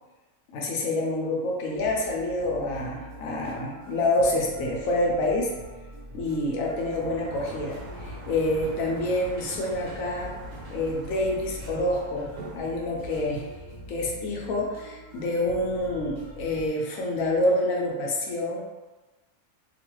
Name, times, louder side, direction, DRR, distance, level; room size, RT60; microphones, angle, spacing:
voice 1, 0.5-5.5 6.1-10.3 10.7-13.5 13.9-18.6, left 1 dB, 70° left, -1 dB, 0.9 m, -27 dB
sound 1, 1.7-16.7, equal, 55° right, 1.1 m, -44 dB
Sliding door, 6.6-14.4, right 2 dB, 85° right, 1.3 m, -44 dB
2.9 x 2.3 x 3.0 m, 1.2 s
omnidirectional pair, 1.6 m